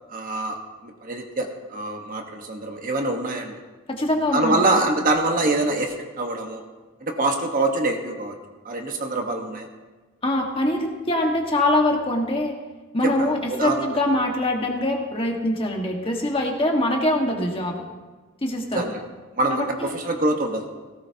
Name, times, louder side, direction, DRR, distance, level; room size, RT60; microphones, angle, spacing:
voice 1, 0.1-0.6 0.8-3.6 4.3-6.6 7.0-8.3 8.6-9.7 13.0-13.9 18.7-19.0 19.4-20.7, right 2 dB, 40° right, 3 dB, 1.3 m, -25 dB
voice 2, 3.9-4.6 10.2-12.5 12.9-17.8 18.4-18.8 19.5-19.9, left 1 dB, 25° left, 1 dB, 1.6 m, -23 dB
17.5 x 17.0 x 2.9 m, 1.3 s
head